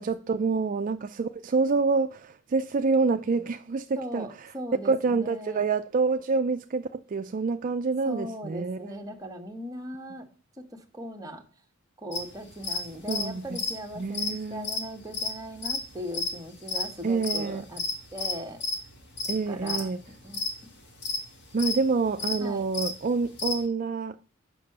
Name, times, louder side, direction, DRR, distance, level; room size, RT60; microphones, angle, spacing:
voice 1, 0.0-4.3 4.8-8.9 13.1-13.4 14.0-14.7 17.0-17.7 19.3-20.0 21.5-24.1, right 4 dB, 40° right, 0.4 m, -27 dB
voice 2, 4.0-5.6 8.0-10.3 10.6-11.4 12.0-17.8 18.1-18.6 19.5-20.7 22.4-22.7, equal, 15° right, 1.3 m, -39 dB
sound 1, 12.1-23.6, left 4 dB, 55° left, 1.7 m, -31 dB
7.0 x 5.7 x 6.6 m
head